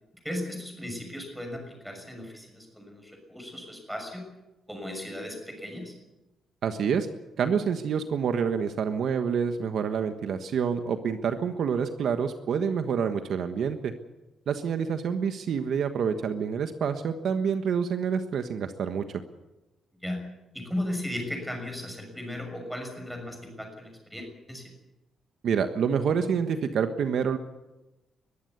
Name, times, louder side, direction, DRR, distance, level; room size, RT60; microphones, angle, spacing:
voice 1, 0.2-4.3 4.7-5.9 20.0-20.2 20.5-24.7, left 1 dB, ahead, 3 dB, 6.4 m, -36 dB
voice 2, 6.6-7.1 7.4-13.9 14.5-19.0 25.4-27.4, right 7 dB, 60° right, 8 dB, 1.4 m, -27 dB
21.5 x 14.5 x 9.5 m, 1.0 s
cardioid pair, 135°, 0 cm